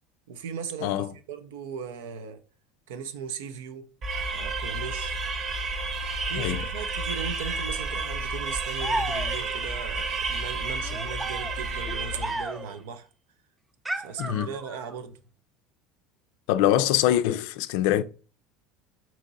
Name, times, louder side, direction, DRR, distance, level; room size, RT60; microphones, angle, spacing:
voice 1, 0.3-2.4 2.9-3.9 4.3-5.2 6.3-13.1 13.9-15.2, right 6 dB, 90° right, 0.5 m, -38 dB
sound 1, 4.0-12.6, right 3 dB, 45° right, 0.8 m, -31 dB
sound 2, 8.8-9.6 10.8-12.8 13.9-15.0, right 2 dB, 10° right, 0.4 m, -34 dB
voice 2, 14.2-14.5 16.5-18.0, left 12 dB, 75° left, 0.3 m, -24 dB
3.7 x 2.9 x 3.9 m
supercardioid pair, 110°, 0 cm